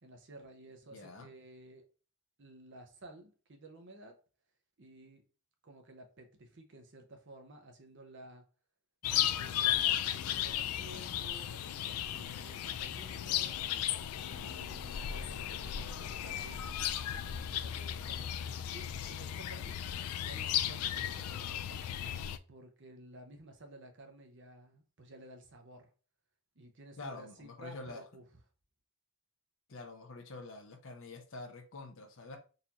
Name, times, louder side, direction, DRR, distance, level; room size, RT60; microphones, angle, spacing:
voice 1, 0.0-1.9 2.4-4.2 4.8-5.2 5.6-8.5 9.0-16.8 17.2-19.8 20.2-21.9 22.5-25.9 26.6-28.2, right 1 dB, 55° right, 0.7 m, -54 dB
voice 2, 0.9-1.3 27.0-28.0 29.7-32.4, left 2 dB, 60° left, 0.7 m, -46 dB
sound 1, 9.0-22.4, left 11 dB, 80° left, 0.3 m, -35 dB
3.9 x 2.6 x 2.9 m
head